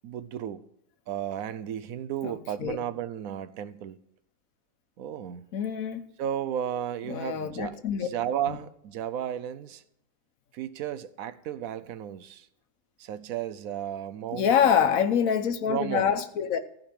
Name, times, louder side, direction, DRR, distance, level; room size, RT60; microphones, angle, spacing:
voice 1, 0.0-0.6 1.1-4.0 5.0-5.5 6.2-9.8 10.5-12.5 13.0-15.0 15.7-16.1, right 10 dB, 85° right, 1.1 m, -34 dB
voice 2, 2.2-2.8 5.5-6.1 7.1-8.1 8.5-8.6 14.3-16.6, left 8 dB, 75° left, 1.3 m, -26 dB
14.5 x 5.2 x 8.5 m
omnidirectional pair, 1.5 m